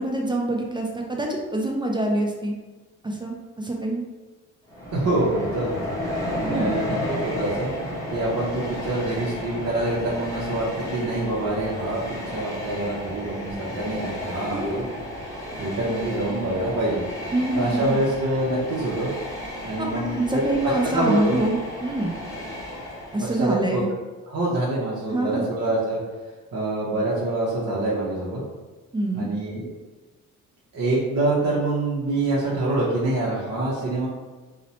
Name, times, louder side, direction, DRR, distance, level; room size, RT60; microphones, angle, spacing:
voice 1, 0.0-2.5 3.0-4.0 6.5-6.7 14.5-14.9 17.3-18.0 19.8-22.1 23.1-23.9 25.1-25.5 28.9-29.3, right 1 dB, 15° right, 0 dB, 0.3 m, -26 dB
Train, 4.7-23.6, left 1 dB, 10° left, 0.8 m, -33 dB
voice 2, 4.9-5.8 6.4-7.7 8.1-12.0 12.3-14.8 15.6-17.0 17.6-19.1 19.7-20.5 20.8-21.4 23.2-23.8 24.3-26.0 26.5-28.4 29.1-29.7 30.7-34.1, right 2 dB, 55° right, -7 dB, 0.7 m, -25 dB
2.7 x 2.1 x 2.7 m, 1.2 s
cardioid pair, 90°, 30 cm